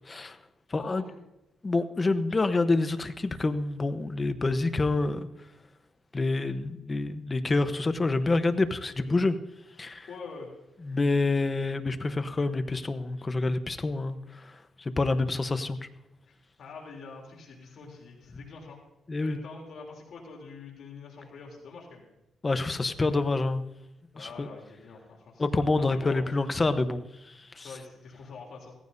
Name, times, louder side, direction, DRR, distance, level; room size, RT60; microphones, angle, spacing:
voice 1, 0.0-0.4 0.7-1.0 1.6-5.3 6.1-9.4 9.8-10.1 10.8-15.8 19.1-19.4 22.4-23.6 24.2-24.5 25.4-27.7, left 3 dB, 25° left, 10 dB, 1.0 m, -27 dB
voice 2, 0.8-1.2 9.0-9.1 10.1-10.5 16.3-18.8 19.2-22.1 22.8-23.2 24.1-26.3 27.6-28.7, left 4 dB, 65° left, -1 dB, 3.2 m, -45 dB
17.0 x 15.0 x 2.7 m, 0.93 s
cardioid pair, 95°, 0 cm